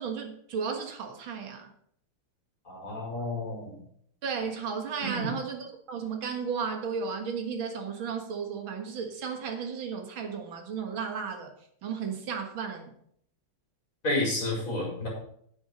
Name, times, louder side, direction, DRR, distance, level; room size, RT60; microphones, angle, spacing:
voice 1, 0.0-1.7 4.2-11.5 11.8-12.9, right 6 dB, 70° right, 5 dB, 2.3 m, -34 dB
voice 2, 2.7-3.7 5.0-5.3 14.0-15.1, left 1 dB, 35° left, -2 dB, 5.4 m, -30 dB
9.1 x 8.0 x 6.3 m, 0.67 s
omnidirectional pair, 2.3 m